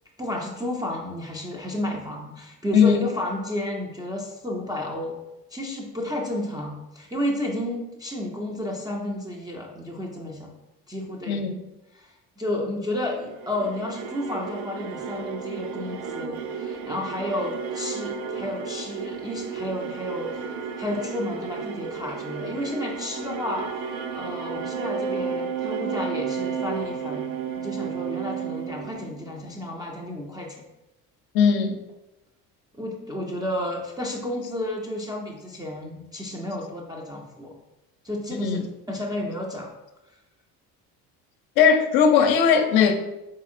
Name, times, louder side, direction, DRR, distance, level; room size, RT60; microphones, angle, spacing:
voice 1, 0.2-5.2 5.5-10.5 10.9-11.4 11.9-23.9 24.2-27.2 27.6-30.6 32.7-37.5 38.0-39.7, left 1 dB, 10° right, 0.3 m, -31 dB
voice 2, 11.3-11.6 31.3-31.8 38.4-38.6 41.6-42.9, left 6 dB, 50° left, 0.5 m, -18 dB
sound 1, 13.3-29.6, right 6 dB, 65° right, 0.6 m, -32 dB
4.0 x 2.8 x 2.5 m
hypercardioid pair, 55°, 48 cm